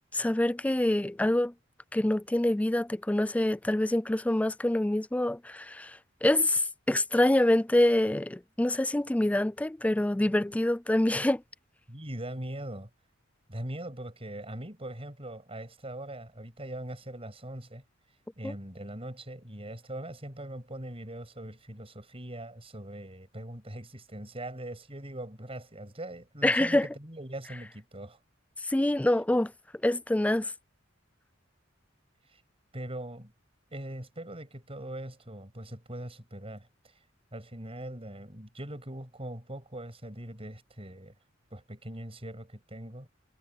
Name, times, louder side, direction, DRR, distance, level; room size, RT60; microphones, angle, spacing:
voice 1, 0.1-1.5 1.9-11.4 18.4-18.5 26.4-26.9 28.6-29.5 29.8-30.5, left 1 dB, 5° left, 0.4 m, -26 dB
voice 2, 11.9-12.9 13.5-17.8 18.4-28.2 32.3-32.4 32.7-33.3 33.7-36.9 37.3-41.1 41.5-43.1, right 1 dB, 30° right, 7.9 m, -41 dB
head